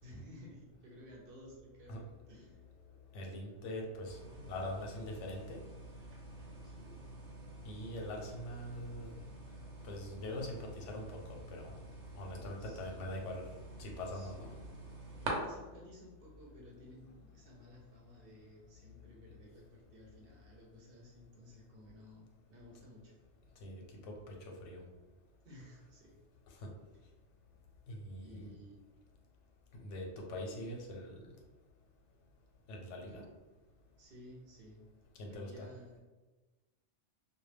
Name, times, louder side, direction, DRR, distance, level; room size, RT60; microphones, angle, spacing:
voice 1, 0.0-2.6 6.6-7.1 12.1-12.2 12.6-12.9 14.1-23.1 25.4-26.2 28.2-28.8 34.0-34.8 35.3-36.0, equal, 60° right, -2 dB, 0.7 m, -55 dB
voice 2, 3.1-4.2 4.5-5.6 7.7-9.1 9.8-11.7 12.1-13.4 13.8-14.5 23.6-24.4 24.6-24.8 26.6-26.7 27.9-28.5 29.7-31.2 32.7-33.2 35.2-35.7, left 1 dB, 90° left, 0 dB, 0.9 m, -43 dB
sound 1, 4.0-15.3, right 2 dB, 85° right, 1.0 m, -48 dB
2.2 x 2.1 x 3.2 m, 1.2 s
omnidirectional pair, 1.2 m